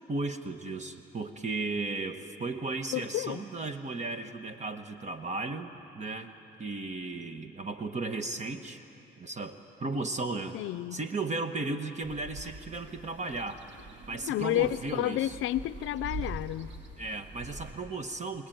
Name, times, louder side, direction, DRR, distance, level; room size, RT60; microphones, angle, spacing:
voice 1, 0.0-6.3 6.6-8.8 9.2-10.6 10.9-13.6 14.1-15.4 17.0-18.5, right 3 dB, 35° right, 1.2 m, -35 dB
voice 2, 2.9-3.4 10.5-11.0 14.3-16.7, left 14 dB, 85° left, 0.5 m, -30 dB
sound 1, 12.0-17.7, right 1 dB, 65° right, 2.6 m, -43 dB
26.5 x 19.0 x 9.2 m
cardioid pair, 90°, 20 cm